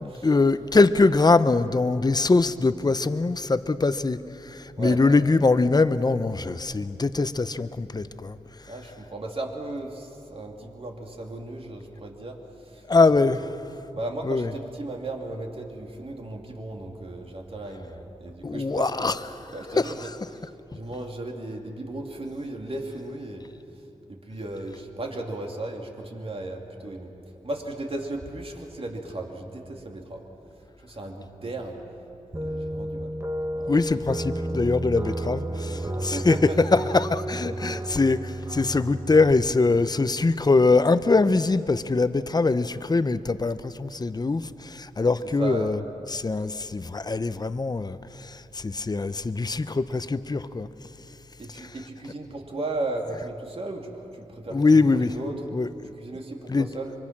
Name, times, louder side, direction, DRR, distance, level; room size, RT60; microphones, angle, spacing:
voice 1, 0.0-4.2 4.4-8.4 12.9-13.5 14.2-14.5 18.4-19.2 19.7-20.1 33.7-45.8 46.1-50.7 51.5-51.7 54.5-55.1 55.5-55.7 56.5-56.7, left 3 dB, 30° left, 13 dB, 0.8 m, -22 dB
voice 2, 8.7-12.8 13.4-13.5 13.9-19.1 19.5-20.5 20.7-23.5 24.1-27.1 27.4-30.2 30.8-33.2 33.5-33.7 35.1-36.6 37.4-37.9 45.4-45.7 51.4-55.4 55.8-56.9, right 2 dB, 50° right, 1 dB, 2.9 m, -36 dB
sound 1, 32.3-39.3, right 1 dB, 20° right, 1.2 m, -32 dB
25.0 x 23.5 x 6.1 m, 2.9 s
cardioid pair, 60°, 13 cm